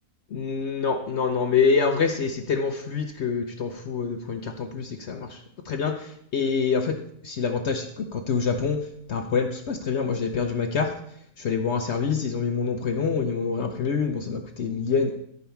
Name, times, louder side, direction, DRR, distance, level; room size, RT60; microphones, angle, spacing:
voice 1, 0.3-5.4 5.6-11.0 11.4-15.1, left 5 dB, 55° left, 6 dB, 0.9 m, -26 dB
14.0 x 5.4 x 4.5 m, 0.72 s
omnidirectional pair, 1.6 m